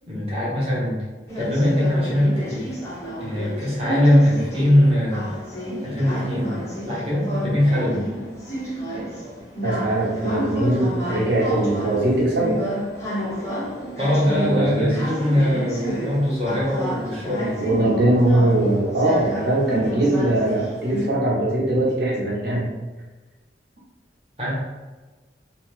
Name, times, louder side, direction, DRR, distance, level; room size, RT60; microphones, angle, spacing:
voice 1, 0.0-1.1 1.4-2.7 3.2-5.3 5.8-8.1 14.0-17.6 24.4-24.5, left 1 dB, 30° right, -6 dB, 0.9 m, -21 dB
sound 1, 1.3-21.0, equal, 15° left, 0.7 m, -30 dB
voice 2, 9.6-12.6 14.3-14.9 17.6-22.7, right 1 dB, 60° right, -4 dB, 0.8 m, -21 dB
2.7 x 2.1 x 3.0 m, 1.3 s
head